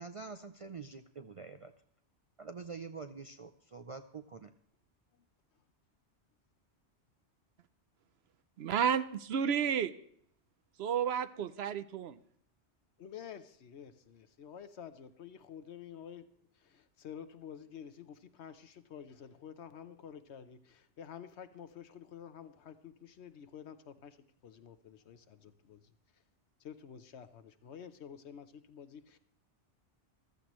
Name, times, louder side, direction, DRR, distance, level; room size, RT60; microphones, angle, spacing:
voice 1, 0.0-1.7 2.4-4.5, right 4 dB, 45° right, 8 dB, 0.4 m, -46 dB
voice 2, 8.6-9.9 10.8-12.2, right 8 dB, 70° right, 13 dB, 0.9 m, -31 dB
voice 3, 13.0-16.3 16.6-24.2 24.4-25.8 26.6-29.2, left 8 dB, 75° left, 10 dB, 1.1 m, -50 dB
14.5 x 13.0 x 3.1 m, 0.66 s
omnidirectional pair, 1.2 m